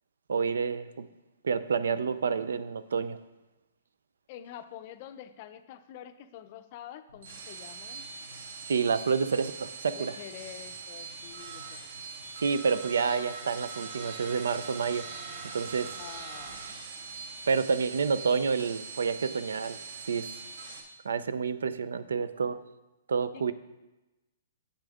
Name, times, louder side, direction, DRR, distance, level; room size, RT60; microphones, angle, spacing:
voice 1, 0.3-1.1 1.4-3.2 8.7-10.2 12.4-15.1 15.5-15.9 17.5-19.8 20.1-20.3 21.0-22.6 23.1-23.5, right 5 dB, 90° right, 14 dB, 0.5 m, -28 dB
voice 2, 4.3-8.1 9.9-11.8 15.9-16.6 23.3-23.5, left 10 dB, 30° left, 10 dB, 0.5 m, -46 dB
sound 1, 7.1-20.8, right 4 dB, 60° right, 1.5 m, -42 dB
8.6 x 8.0 x 3.6 m, 1.0 s
hypercardioid pair, 170°, 0 cm